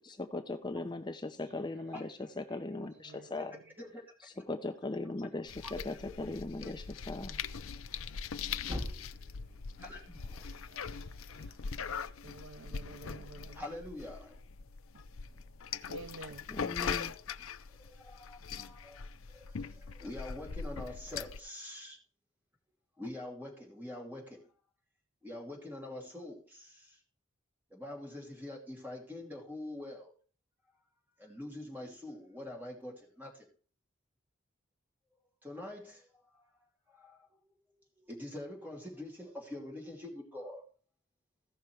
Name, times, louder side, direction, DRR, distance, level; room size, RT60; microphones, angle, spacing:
voice 1, 0.1-3.5 4.2-7.4 16.5-17.1, left 2 dB, 20° left, 0.5 m, -39 dB
voice 2, 1.4-3.3 7.0-7.9 8.8-12.4, right 1 dB, 50° right, 3.6 m, -64 dB
voice 3, 2.6-3.6 5.1-5.2 12.2-13.6 15.9-16.5, right 2 dB, 70° right, 0.5 m, -50 dB
sound 1, 5.5-21.4, left 6 dB, 80° left, 0.5 m, -41 dB
Thump thud, 7.8-11.9, left 1 dB, 25° right, 2.6 m, -46 dB
voice 4, 9.8-10.5 13.5-14.4 17.1-17.3 17.8-19.0 19.4-22.0 23.0-24.5 25.2-27.0 27.7-30.1 31.2-33.5 35.4-35.8 36.3-36.5 36.9-37.4 38.0-40.6, left 1 dB, 10° right, 2.6 m, -45 dB
15.5 x 5.9 x 4.5 m
head